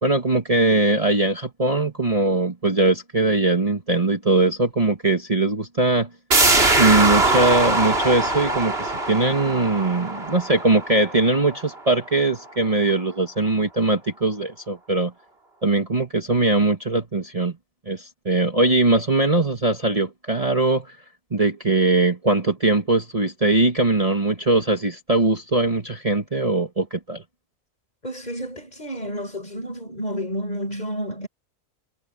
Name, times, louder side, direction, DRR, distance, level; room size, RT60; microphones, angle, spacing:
voice 1, 0.0-6.1 6.8-15.1 15.6-17.6 17.9-21.0 21.3-27.2, right 2 dB, 25° right, 1.8 m, -21 dB
sound 1, 6.3-11.8 12.1-12.2, right 2 dB, 45° right, 3.1 m, -22 dB
voice 2, 28.0-31.3, equal, 30° left, 6.3 m, -30 dB
omnidirectional pair, 1.4 m